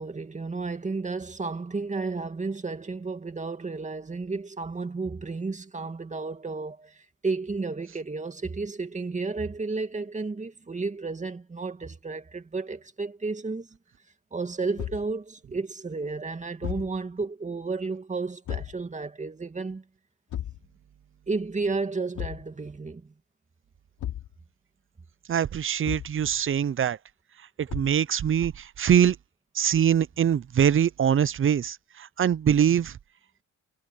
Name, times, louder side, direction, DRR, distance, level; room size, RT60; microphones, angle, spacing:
voice 1, 0.0-13.7 14.3-19.8 21.3-23.1, right 3 dB, 25° right, 2.4 m, -32 dB
Thump thud, 14.8-15.1 16.6-17.0 18.5-18.8 20.3-20.7 22.1-22.5 24.0-24.3 25.8-26.2 27.7-28.0, left 11 dB, 80° left, 3.3 m, -34 dB
voice 2, 25.3-27.0 27.6-29.2 29.5-33.0, right 9 dB, 45° right, 0.7 m, -23 dB
cardioid pair, 90°, 30 cm